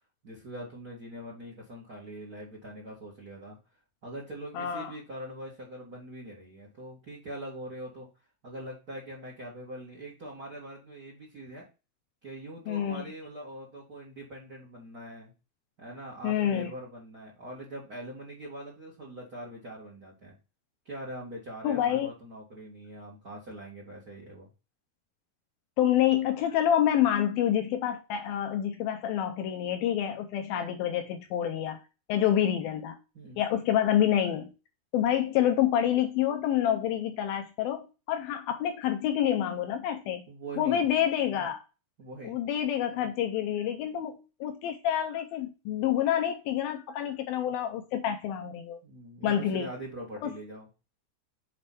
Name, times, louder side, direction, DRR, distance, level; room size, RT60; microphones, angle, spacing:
voice 1, 0.2-3.6 4.0-8.1 8.4-11.7 12.2-15.3 15.8-20.3 20.8-24.5 33.1-33.4 36.8-36.9 40.3-40.8 42.0-42.4 48.8-50.7, right 1 dB, 35° right, 1.6 m, -42 dB
voice 2, 4.6-4.9 12.7-13.1 16.2-16.7 21.6-22.1 25.8-31.8 32.1-33.0 33.4-34.5 34.9-40.3 40.6-41.6 42.2-48.8 49.2-49.7 50.2-50.3, left 10 dB, 80° left, 2.1 m, -27 dB
7.2 x 4.9 x 4.2 m
omnidirectional pair, 5.1 m